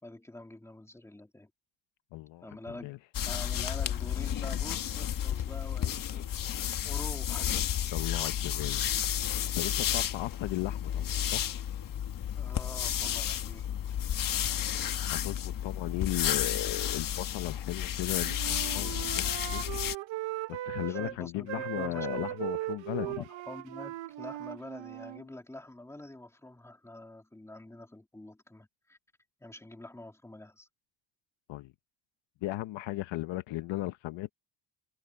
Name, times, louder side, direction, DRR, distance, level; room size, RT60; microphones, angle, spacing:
voice 1, 0.0-1.5 2.4-2.9 3.2-7.5 12.3-13.7 20.8-22.3 23.0-29.0 29.4-30.7, left 1 dB, 5° left, 3.3 m, -46 dB
voice 2, 2.1-3.0 7.9-11.5 15.1-19.2 19.5-19.7 20.5-23.2 31.5-31.7 32.4-34.3, left 16 dB, 80° left, 1.0 m, -36 dB
sound 1, 3.1-20.0, left 10 dB, 45° left, 1.3 m, -32 dB
Wind instrument woodwind instrument, 18.1-21.2 21.5-25.2, right 15 dB, 80° right, 0.9 m, -38 dB
cardioid pair, 160°, 44 cm